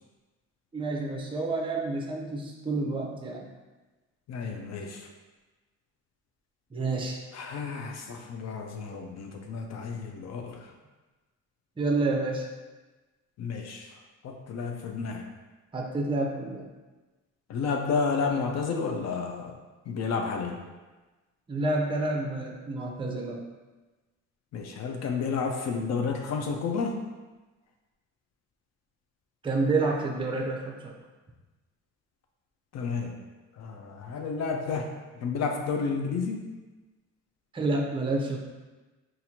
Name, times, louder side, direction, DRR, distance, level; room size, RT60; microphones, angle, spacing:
voice 1, 0.7-3.5 6.7-7.2 11.8-12.5 15.7-16.7 21.5-23.4 29.4-30.9 37.5-38.4, right 2 dB, 15° right, 0 dB, 0.6 m, -29 dB
voice 2, 4.3-5.1 7.3-10.7 13.4-13.9 14.2-15.3 17.5-19.6 19.9-20.6 24.5-27.0 32.7-33.1 33.6-34.9 35.1-36.4, left 5 dB, 60° left, 3 dB, 0.5 m, -31 dB
4.2 x 2.5 x 2.8 m, 1.2 s
cardioid pair, 90°, 30 cm